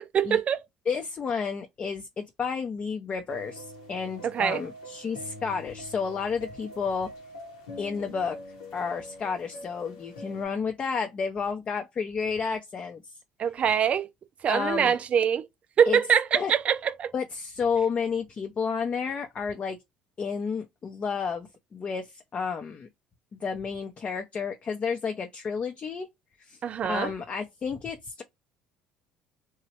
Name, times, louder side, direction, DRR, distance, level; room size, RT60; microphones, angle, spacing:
voice 1, 0.1-0.6 4.2-4.6 13.4-14.1 14.4-15.5 15.8-17.1 26.6-27.1, right 8 dB, 45° right, 0.4 m, -24 dB
voice 2, 0.9-7.1 7.8-8.4 8.7-13.0 14.5-15.0 15.9-16.0 16.3-16.5 17.1-19.8 20.2-22.9 23.4-26.1 26.4-26.6 26.8-28.2, left 5 dB, 40° left, 0.6 m, -31 dB
sound 1, 3.3-10.5, left 1 dB, 90° left, 1.0 m, -44 dB
3.0 x 2.2 x 2.8 m
supercardioid pair, 85°, 3 cm